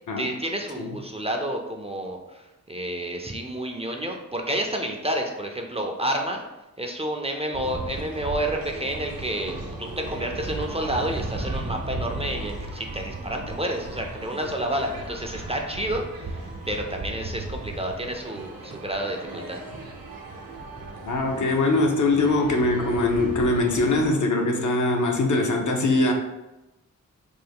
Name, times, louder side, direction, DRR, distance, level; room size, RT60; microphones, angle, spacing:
voice 1, 0.2-2.4 2.7-6.4 6.8-19.6, right 1 dB, 20° right, 2 dB, 0.4 m, -30 dB
sound 1, 7.5-24.1, right 2 dB, 85° right, 0.7 m, -36 dB
voice 2, 21.0-26.1, left 2 dB, 65° left, 2 dB, 0.6 m, -22 dB
3.4 x 2.0 x 3.4 m, 1.0 s
cardioid pair, 45°, 33 cm